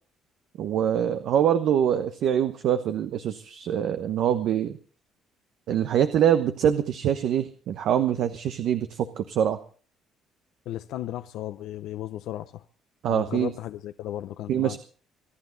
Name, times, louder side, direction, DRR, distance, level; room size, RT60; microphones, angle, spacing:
voice 1, 0.6-4.8 5.7-9.6 13.0-13.5 14.5-14.8, right 9 dB, 70° right, 1.0 m, -24 dB
voice 2, 10.7-12.6 13.1-14.8, left 13 dB, 80° left, 0.7 m, -35 dB
24.0 x 11.5 x 4.0 m
cardioid pair, 95°, 0 cm